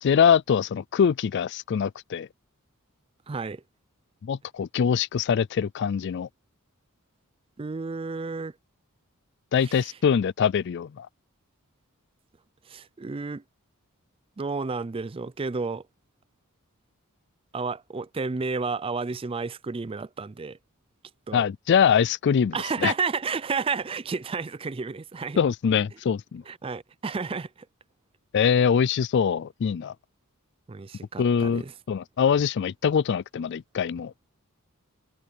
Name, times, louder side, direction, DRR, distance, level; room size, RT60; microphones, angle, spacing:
voice 1, 0.0-2.3 4.2-6.3 9.5-11.1 21.3-22.6 22.8-22.9 25.4-26.4 28.3-29.9 31.2-34.1, left 7 dB, 50° left, 0.3 m, -23 dB
voice 2, 3.3-3.6 7.6-8.5 9.6-10.0 12.7-13.4 14.4-15.8 17.5-20.6 21.3-21.4 22.5-25.4 26.5-27.7 30.7-31.7, right 4 dB, 25° right, 0.4 m, -31 dB
head